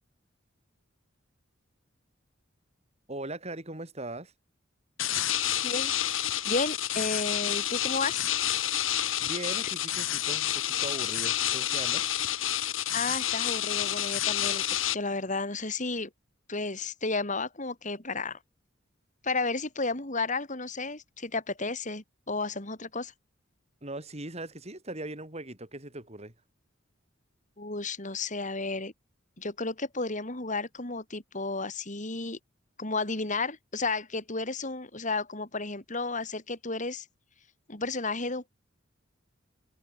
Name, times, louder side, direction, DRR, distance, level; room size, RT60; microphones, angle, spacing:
voice 1, 3.1-4.3 9.2-12.1 23.8-26.3, right 2 dB, 35° right, 4.8 m, -39 dB
sound 1, 5.0-15.0, left 12 dB, 80° left, 5.7 m, -29 dB
voice 2, 6.4-8.3 12.9-14.6 14.9-16.1 16.5-18.4 19.2-23.1 27.6-28.9 29.4-32.4 32.8-37.0 37.7-38.5, left 3 dB, 40° left, 4.0 m, -32 dB
head